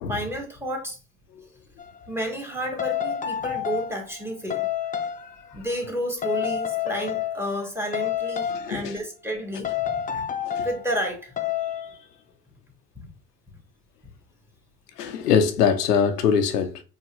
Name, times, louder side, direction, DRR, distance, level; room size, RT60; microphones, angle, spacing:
voice 1, 0.1-1.0 2.1-4.7 5.5-10.2 10.6-11.3 13.0-13.1, equal, 5° right, 1.7 m, -31 dB
sound 1, 1.8-2.0 2.8-4.0 4.5-5.2 6.2-7.6 7.9-8.8 9.6-10.8 11.4-11.9, left 9 dB, 20° left, 0.5 m, -28 dB
voice 2, 8.5-8.9 10.4-10.7 15.0-16.8, left 7 dB, 90° left, 0.7 m, -23 dB
4.5 x 2.8 x 3.0 m
hypercardioid pair, 65°, 46 cm